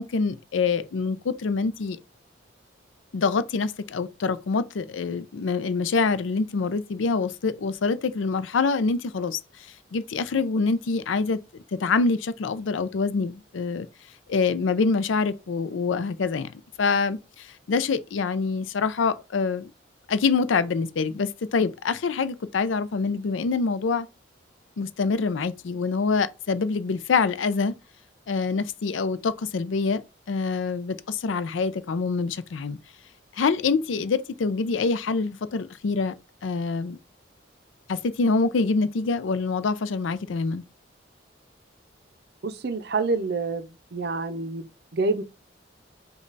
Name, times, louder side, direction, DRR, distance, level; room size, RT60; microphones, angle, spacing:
voice 1, 0.0-2.0 3.1-9.4 9.9-11.4 11.7-13.9 14.3-16.5 16.8-19.7 20.1-24.1 24.8-27.8 28.3-32.8 33.4-36.1 36.4-37.0 37.9-40.6, left 4 dB, 85° left, 0.4 m, -25 dB
voice 2, 42.4-45.2, right 3 dB, 55° right, 0.5 m, -28 dB
5.2 x 2.3 x 3.9 m
head